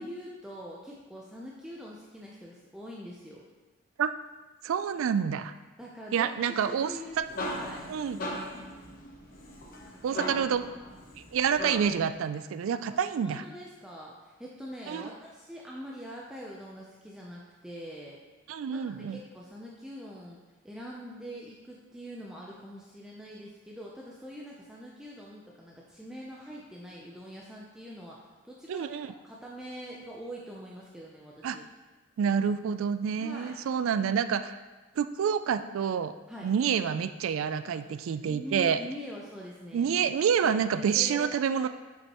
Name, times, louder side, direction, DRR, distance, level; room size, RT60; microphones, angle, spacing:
voice 1, 0.0-3.4 5.8-7.9 9.9-10.2 10.8-10.9 12.9-18.2 18.7-20.4 20.6-31.6 33.2-33.6 36.3-36.5 37.7-37.9 38.2-39.9 40.4-41.7, equal, 5° right, -4 dB, 0.5 m, -44 dB
voice 2, 4.6-5.5 6.1-6.9 7.2-7.3 7.9-8.2 10.0-10.7 11.3-13.4 14.9-15.1 18.5-19.2 28.7-29.1 31.4-31.6 32.2-34.6 35.0-36.1 36.4-38.8 39.7-41.7, right 7 dB, 80° right, 12 dB, 0.3 m, -28 dB
sound 1, 6.9-12.1, equal, 45° left, 0.9 m, -38 dB
7.7 x 5.3 x 2.9 m, 1.2 s
head